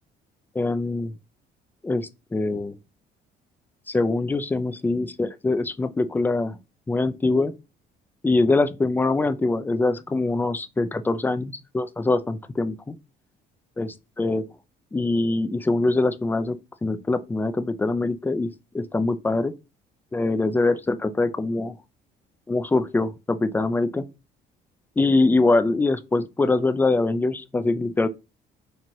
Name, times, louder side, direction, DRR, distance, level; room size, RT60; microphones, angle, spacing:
voice 1, 0.6-1.1 1.8-2.7 3.9-6.5 6.9-7.5 8.2-13.0 13.8-14.5 14.9-19.5 20.1-21.7 22.5-24.1 25.0-28.1, left 2 dB, 10° left, 0.4 m, -23 dB
4.5 x 2.8 x 2.7 m
cardioid pair, 110°, 17 cm